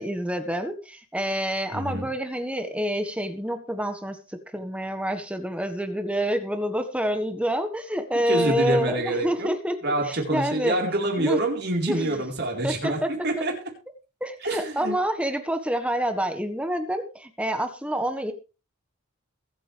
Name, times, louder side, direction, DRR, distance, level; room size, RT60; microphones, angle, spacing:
voice 1, 0.0-10.8 11.2-11.4 11.9-12.2 12.6-13.1 14.2-18.3, equal, 5° right, 7 dB, 1.5 m, -27 dB
voice 2, 1.7-2.1 8.3-9.5 9.8-13.5 14.4-15.0, right 1 dB, 50° right, 1 dB, 4.3 m, -26 dB
22.5 x 8.0 x 3.4 m, 0.32 s
head